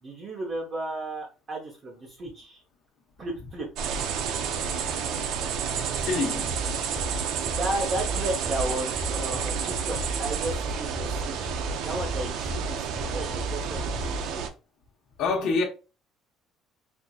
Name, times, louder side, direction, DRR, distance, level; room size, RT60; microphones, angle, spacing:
voice 1, 0.0-2.6 3.2-3.9 7.6-14.4, right 1 dB, 30° right, 0.9 m, -34 dB
sound 1, 3.8-14.5, right 7 dB, 70° right, 0.5 m, -30 dB
voice 2, 6.0-6.5 15.2-15.6, left 4 dB, 60° left, 1.0 m, -26 dB
sound 2, 6.5-14.5, equal, 5° right, 0.4 m, -35 dB
4.5 x 2.7 x 2.4 m
cardioid pair, 160°, 0 cm